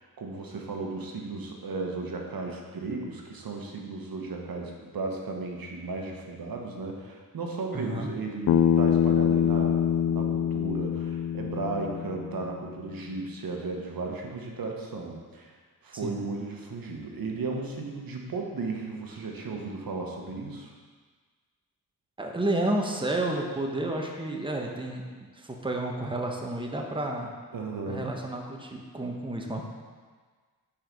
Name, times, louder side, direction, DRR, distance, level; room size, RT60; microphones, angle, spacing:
voice 1, 0.0-15.5 15.8-20.7 27.5-28.1, right 3 dB, 65° right, 1 dB, 1.3 m, -35 dB
voice 2, 7.7-8.1 16.0-16.1 22.2-25.1 25.4-27.3 27.9-29.6, right 1 dB, 15° right, 1 dB, 1.2 m, -31 dB
Bass guitar, 8.5-12.7, left 9 dB, 55° left, 0.4 m, -25 dB
8.7 x 4.8 x 5.3 m, 1.5 s
cardioid pair, 65°, 38 cm